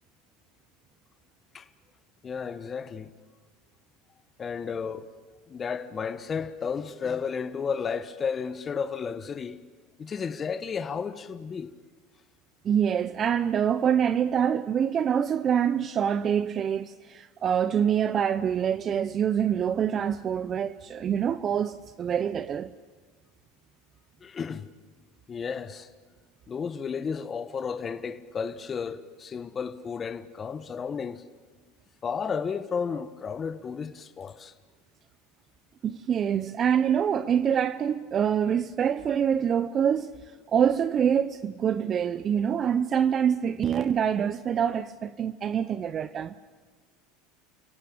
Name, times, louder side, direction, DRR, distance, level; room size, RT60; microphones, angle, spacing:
voice 1, 2.2-3.1 4.4-5.1 5.5-9.6 10.0-11.7 24.2-24.7 25.3-25.9 26.5-31.2 32.0-34.5, left 6 dB, 30° left, 1.2 m, -33 dB
voice 2, 12.6-22.7 35.8-40.1 40.5-46.3, right 8 dB, 35° right, 0.7 m, -25 dB
29.5 x 17.5 x 8.6 m
hypercardioid pair, 95°, 0 cm